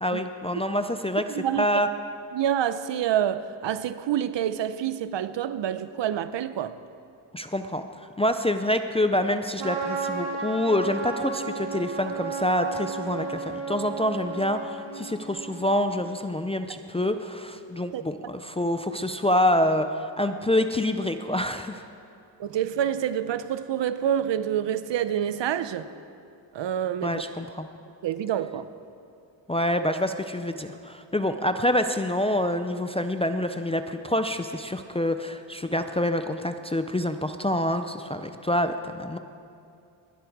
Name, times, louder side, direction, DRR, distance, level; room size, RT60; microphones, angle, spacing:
voice 1, 0.0-1.9 7.3-21.8 27.0-27.7 29.5-39.2, left 1 dB, 15° left, 7 dB, 0.4 m, -26 dB
voice 2, 1.3-1.7 2.3-6.7 16.7-16.8 17.9-18.0 22.4-25.9 26.5-27.2 28.0-28.7, right 10 dB, 65° right, 13 dB, 0.7 m, -27 dB
Trumpet, 9.6-15.8, right 4 dB, 85° right, 1.8 m, -33 dB
20.5 x 11.5 x 4.7 m, 2.5 s
wide cardioid pair, 145°, 47 cm